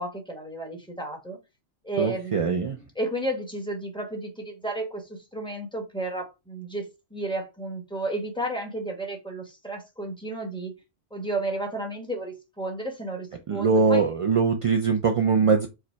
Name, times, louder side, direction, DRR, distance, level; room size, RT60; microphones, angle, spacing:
voice 1, 0.0-1.4 1.8-10.7 11.1-14.0, right 2 dB, 5° left, 1.0 m, -33 dB
voice 2, 2.0-2.8 13.5-15.7, right 5 dB, 60° right, 0.3 m, -22 dB
4.7 x 2.1 x 4.4 m
omnidirectional pair, 1.1 m